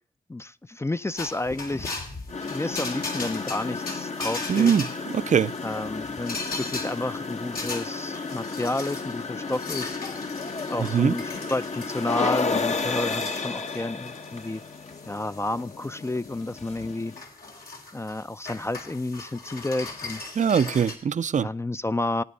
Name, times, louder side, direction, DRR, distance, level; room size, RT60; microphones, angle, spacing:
voice 1, 0.3-2.0 2.5-4.7 5.6-10.0 10.7-14.6 15.0-17.2 17.9-20.2 21.4-22.2, left 2 dB, 20° left, 0.4 m, -31 dB
sound 1, 1.2-21.0, left 3 dB, 80° left, 2.6 m, -39 dB
sound 2, 2.3-17.2, left 4 dB, 50° left, 0.9 m, -33 dB
voice 2, 4.5-4.9 5.1-5.5 10.8-11.2 20.4-21.5, right 7 dB, 55° right, 0.5 m, -22 dB
17.0 x 9.4 x 4.0 m
cardioid pair, 60°, 15 cm